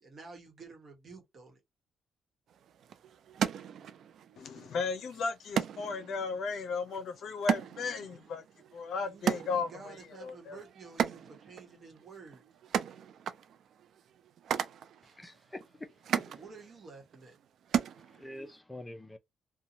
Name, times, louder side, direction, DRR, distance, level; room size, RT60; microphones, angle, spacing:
voice 1, 0.0-1.6 8.9-12.4 16.3-17.4, right 4 dB, 45° right, 1.1 m, -51 dB
sound 1, 2.5-18.6, right 8 dB, 70° right, 0.3 m, -37 dB
voice 2, 4.4-8.4 8.7-9.7 10.2-10.6, left 4 dB, 70° left, 0.5 m, -35 dB
voice 3, 15.0-16.4 18.0-19.2, left 1 dB, 15° left, 0.5 m, -47 dB
2.7 x 2.2 x 2.7 m
cardioid pair, 90°, 0 cm